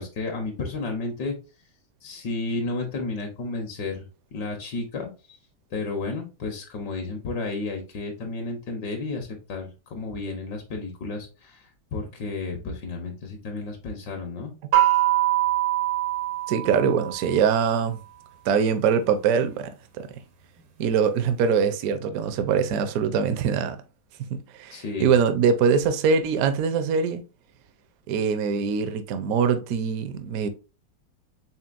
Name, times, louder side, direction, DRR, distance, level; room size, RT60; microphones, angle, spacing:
voice 1, 0.0-1.3 2.0-4.0 4.3-5.1 5.7-11.6 11.9-14.5 24.7-25.1, left 3 dB, 70° left, 1.5 m, -32 dB
sound 1, 14.7-17.4, right 15 dB, 85° right, 1.6 m, -23 dB
voice 2, 16.5-18.0 18.5-19.7 20.0-20.1 20.8-23.8 24.3-27.2 28.1-30.5, right 6 dB, 70° right, 0.8 m, -23 dB
4.3 x 3.6 x 2.4 m
omnidirectional pair, 2.0 m